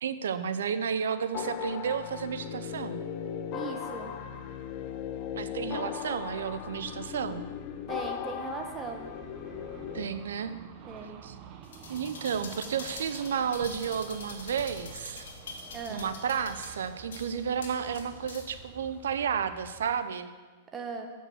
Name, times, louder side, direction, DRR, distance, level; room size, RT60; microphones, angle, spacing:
voice 1, 0.0-3.0 5.4-7.4 9.9-10.5 11.2-11.3 11.9-15.3 15.9-20.3, right 7 dB, 85° right, 11 dB, 0.5 m, -32 dB
sound 1, 1.3-10.1, left 8 dB, 40° left, 0.6 m, -37 dB
voice 2, 3.5-4.1 7.9-9.1 10.9-11.2 15.7-16.1 20.7-21.1, right 4 dB, 20° right, 3 dB, 1.1 m, -38 dB
sound 2, 7.9-20.0, right 6 dB, 40° right, 0.7 m, -50 dB
sound 3, 11.6-18.6 19.1-19.2, left 4 dB, 80° left, 1.5 m, -45 dB
7.5 x 5.3 x 6.3 m, 1.4 s
hypercardioid pair, 135°, 0 cm